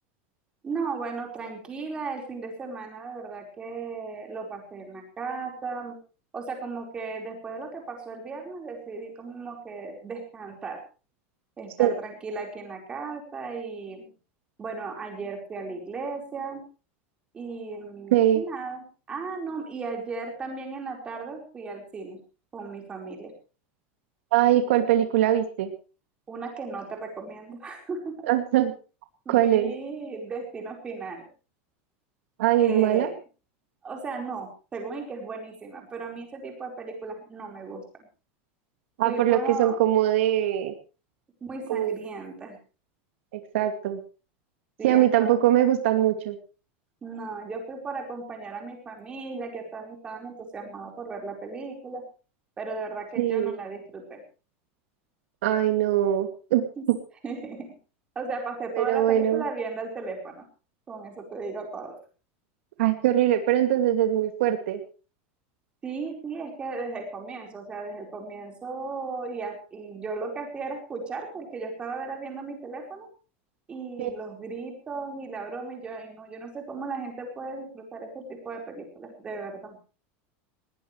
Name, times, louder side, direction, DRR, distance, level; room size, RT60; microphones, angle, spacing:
voice 1, 0.6-6.0 6.3-10.8 11.6-14.1 14.6-16.6 17.3-22.2 22.5-23.3 26.3-28.1 29.2-31.2 32.6-33.2 33.8-38.1 39.0-39.8 41.4-42.6 44.8-45.4 47.0-52.0 52.6-54.2 56.8-56.9 57.2-57.7 58.1-60.4 60.9-61.9 65.8-73.1 73.7-79.8, right 4 dB, 15° right, 2 dB, 4.7 m, -36 dB
voice 2, 18.1-18.4 24.3-25.7 28.2-28.7 29.3-29.7 32.4-33.1 39.0-40.7 41.7-42.0 43.3-44.0 44.8-46.4 53.2-53.5 55.4-56.6 58.8-59.4 62.8-64.8 74.0-74.1, right 12 dB, 80° right, 6 dB, 2.4 m, -22 dB
20.0 x 19.0 x 3.3 m, 0.35 s
supercardioid pair, 175°, 7 cm